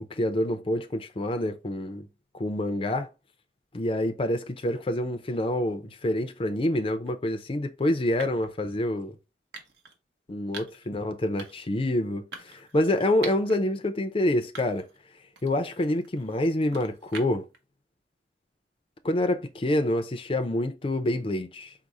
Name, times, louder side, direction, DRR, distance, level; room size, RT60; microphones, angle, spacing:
voice 1, 0.1-2.1 2.4-3.1 3.7-9.2 10.3-14.9 15.4-17.5 19.0-21.7, left 1 dB, 30° left, 0.5 m, -27 dB
sound 1, 6.9-7.1 8.2-8.5 9.5-10.0 10.5-10.9 11.4-11.7 12.3-13.6 14.0-14.1 14.6-15.0 15.4-17.6, right 4 dB, 70° right, 0.9 m, -43 dB
4.7 x 2.1 x 4.0 m
head